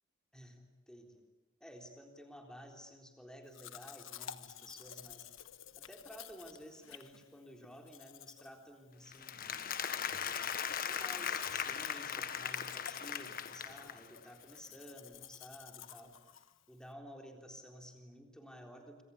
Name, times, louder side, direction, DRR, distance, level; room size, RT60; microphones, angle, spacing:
voice 1, 0.3-1.2 1.6-5.3 5.8-9.4 10.3-16.1 16.7-19.0, equal, 5° left, 3 dB, 3.7 m, -53 dB
Domestic sounds home sounds, 3.5-16.9, left 9 dB, 75° left, 1.4 m, -53 dB
Applause, 9.1-14.2, left 8 dB, 45° left, 1.4 m, -38 dB
27.0 x 25.5 x 8.5 m, 1.1 s
head